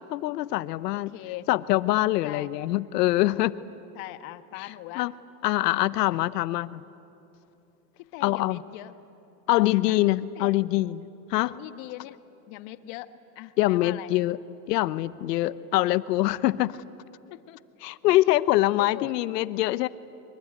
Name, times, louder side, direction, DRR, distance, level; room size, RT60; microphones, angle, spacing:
voice 1, 0.1-1.1 1.5-3.5 5.0-5.1 5.4-6.8 8.2-8.6 9.5-11.5 13.6-14.4 14.7-16.8 17.8-19.9, left 17 dB, 80° left, 16 dB, 0.9 m, -24 dB
voice 2, 0.9-1.5 2.2-2.5 3.9-5.1 6.1-6.2 8.0-8.9 9.5-10.0 10.3-10.5 11.3-12.2 12.5-14.1 15.4-15.6 16.7-16.8 17.3-17.6 18.8-19.1, left 17 dB, 55° left, 11 dB, 1.3 m, -41 dB
23.5 x 22.0 x 9.4 m, 2.8 s
supercardioid pair, 130°, 47 cm